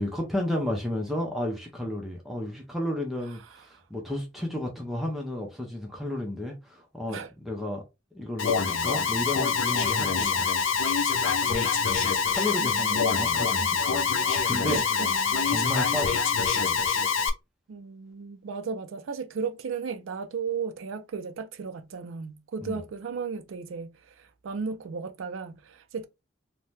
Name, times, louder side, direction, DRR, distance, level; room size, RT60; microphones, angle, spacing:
voice 1, 0.0-7.8 8.1-10.7 11.2-14.1 14.4-14.8 15.4-16.2 16.5-16.8 22.6-22.8, left 1 dB, ahead, 0.6 m, -33 dB
Alarm, 8.4-17.3, left 5 dB, 70° left, 0.5 m, -25 dB
voice 2, 12.6-13.8 14.7-15.6 17.7-26.1, right 5 dB, 75° right, 0.4 m, -35 dB
2.7 x 2.1 x 3.1 m
head